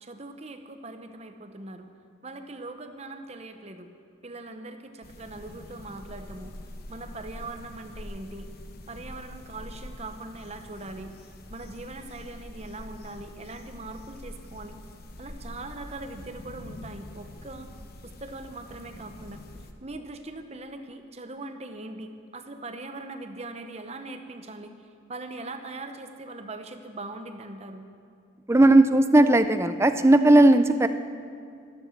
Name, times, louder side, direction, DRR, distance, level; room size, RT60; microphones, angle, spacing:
voice 1, 0.0-1.9 2.2-3.9 4.2-6.6 6.9-8.5 8.9-11.1 11.5-14.8 15.2-17.7 18.0-19.4 19.8-24.7 25.1-27.9, right 2 dB, 35° right, 7 dB, 0.9 m, -41 dB
sound 1, 5.0-19.7, left 1 dB, 50° left, 0.9 m, -44 dB
voice 2, 28.5-30.9, right 1 dB, 15° right, 10 dB, 0.4 m, -17 dB
13.0 x 13.0 x 6.5 m, 2.4 s
head